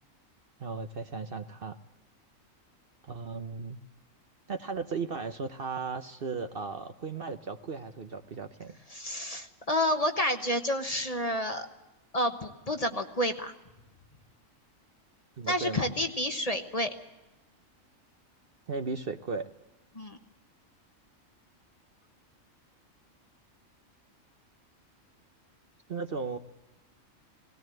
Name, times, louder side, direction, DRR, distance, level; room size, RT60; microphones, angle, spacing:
voice 1, 0.6-1.8 3.0-3.8 4.5-8.7 15.4-15.9 18.7-19.5 25.9-26.4, right 4 dB, 50° right, 8 dB, 0.9 m, -36 dB
voice 2, 8.9-11.7 12.1-13.5 15.5-16.9 19.9-20.2, left 1 dB, 30° left, 6 dB, 1.2 m, -29 dB
19.0 x 17.5 x 7.7 m, 1.0 s
omnidirectional pair, 1.4 m